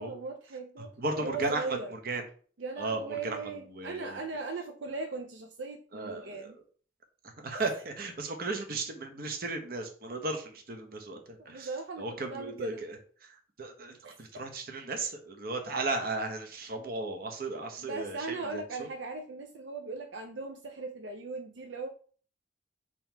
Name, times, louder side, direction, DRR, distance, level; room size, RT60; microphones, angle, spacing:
voice 1, 0.0-0.9 1.2-1.9 2.6-6.6 7.5-7.6 11.4-12.8 14.0-14.2 17.8-21.9, right 3 dB, 75° right, 4 dB, 0.5 m, -38 dB
voice 2, 0.8-1.6 2.0-2.2 2.8-4.2 5.9-6.5 7.2-11.7 12.0-13.0 13.2-18.9, right 3 dB, 50° right, 4 dB, 0.8 m, -35 dB
3.8 x 3.0 x 4.4 m, 0.43 s
head